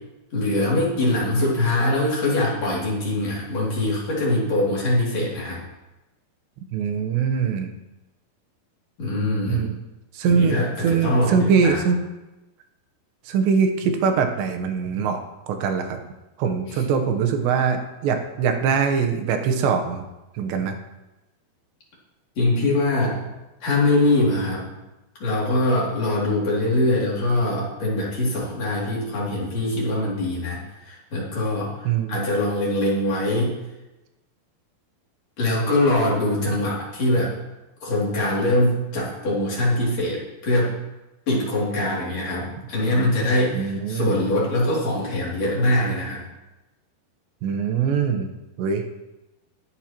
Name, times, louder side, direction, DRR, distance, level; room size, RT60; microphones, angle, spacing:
voice 1, 0.3-5.6 9.0-9.7 10.2-11.8 16.7-16.8 22.4-23.3 23.6-24.6 25.2-33.6 35.4-37.3 37.8-40.8 41.3-46.2, left 1 dB, 45° left, -5 dB, 3.5 m, -23 dB
voice 2, 6.7-7.7 9.5-9.8 10.1-12.0 13.3-15.2 15.5-16.0 16.4-20.0 20.3-20.8 31.8-32.3 43.5-44.1 47.4-48.3 48.6-48.8, right 6 dB, 85° right, 6 dB, 3.3 m, -22 dB
20.5 x 8.1 x 3.0 m, 1.0 s
omnidirectional pair, 4.9 m